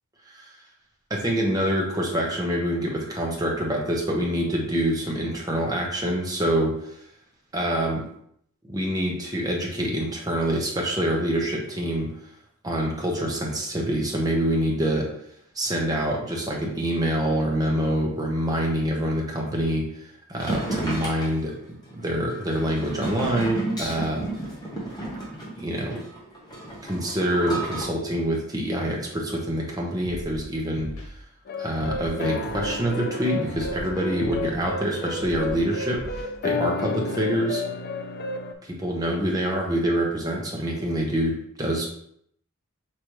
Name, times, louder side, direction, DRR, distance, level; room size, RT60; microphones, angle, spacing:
voice 1, 1.1-6.9 7.5-8.0 8.6-12.1 12.6-15.1 15.5-21.5 21.9-24.2 25.6-26.0 26.8-30.9 31.6-37.6 38.6-41.9, right 1 dB, 15° right, -2 dB, 0.9 m, -26 dB
sound 1, 20.4-27.9, right 2 dB, 20° left, 1.0 m, -33 dB
Scratching (performance technique), 30.0-30.4 30.8-31.1 31.8-32.1 32.5-32.8 33.5-33.9 34.2-34.5 35.2-35.5 35.9-36.2, left 1 dB, 80° left, 1.2 m, -38 dB
sound 2, 31.5-38.5, left 3 dB, 45° left, 0.4 m, -31 dB
5.1 x 3.0 x 3.1 m, 0.70 s
head